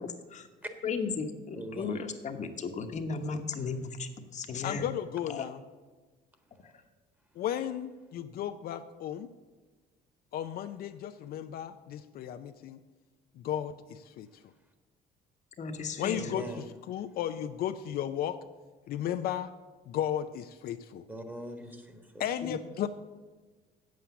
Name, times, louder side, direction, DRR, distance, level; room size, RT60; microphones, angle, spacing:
voice 1, 0.8-4.8 5.3-5.4 15.6-16.2, left 5 dB, 45° left, 6 dB, 1.1 m, -35 dB
voice 2, 1.5-2.1 16.1-16.6 21.1-22.2, equal, 10° right, 5 dB, 1.5 m, -41 dB
voice 3, 4.6-5.6 7.4-9.3 10.3-12.8 13.4-14.3 16.0-16.4 16.9-18.4 18.9-19.5 19.9-21.0 22.2-22.9, left 10 dB, 65° left, 8 dB, 0.5 m, -34 dB
8.4 x 7.7 x 7.0 m, 1.3 s
cardioid pair, 110°, 17 cm